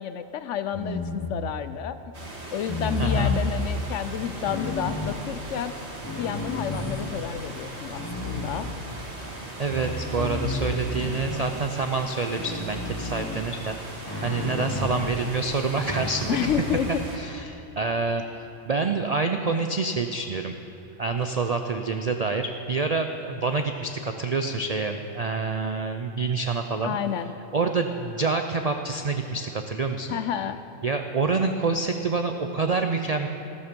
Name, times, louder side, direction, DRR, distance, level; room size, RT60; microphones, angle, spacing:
voice 1, 0.0-2.0 2.5-5.8 6.1-8.7 16.3-17.0 26.8-27.3 30.1-30.6, left 9 dB, 65° left, 11 dB, 0.9 m, -30 dB
sound 1, 0.7-1.7 2.6-3.5 4.4-5.2 5.9-7.3 8.0-9.1 9.7-11.6 12.4-13.5 14.1-15.2 15.8-16.8, left 2 dB, 20° left, 1.0 m, -31 dB
sound 2, 2.1-17.2, right 2 dB, 50° right, 2.1 m, -39 dB
voice 2, 3.0-3.4 9.6-13.7 14.2-16.5 17.1-18.2 18.7-20.6 21.0-27.0 27.5-30.2 30.8-33.3, right 4 dB, 70° right, 6 dB, 0.3 m, -27 dB
14.5 x 13.5 x 5.2 m, 3.0 s
omnidirectional pair, 1.4 m